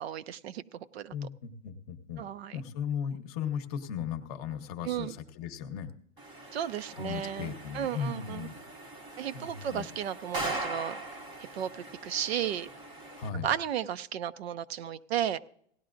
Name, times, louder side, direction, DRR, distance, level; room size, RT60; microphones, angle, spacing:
voice 1, 0.0-1.1 2.2-2.6 4.8-5.2 6.5-8.5 9.2-11.0 11.4-12.7 13.4-15.4, right 10 dB, 60° right, 0.6 m, -34 dB
voice 2, 1.1-2.2 2.5-5.9 6.9-8.6 9.3-9.9 13.2-13.5, left 7 dB, 30° left, 0.9 m, -36 dB
sound 1, 6.2-13.3, right 2 dB, 15° right, 0.7 m, -41 dB
17.5 x 11.5 x 2.5 m
supercardioid pair, 165°, 36 cm